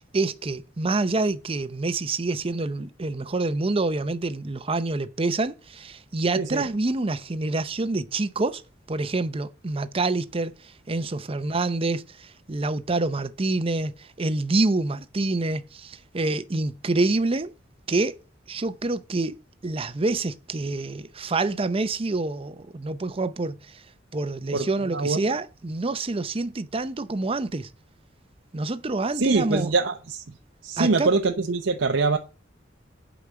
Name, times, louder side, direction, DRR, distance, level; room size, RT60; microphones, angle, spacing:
voice 1, 0.0-8.6 8.9-17.5 17.9-18.1 18.5-19.3 19.6-23.8 24.1-27.7 28.5-29.7 30.7-31.1, right 2 dB, 30° right, 0.6 m, -27 dB
voice 2, 29.2-30.2 30.6-32.2, right 3 dB, 80° right, 0.8 m, -23 dB
8.2 x 5.0 x 6.8 m
head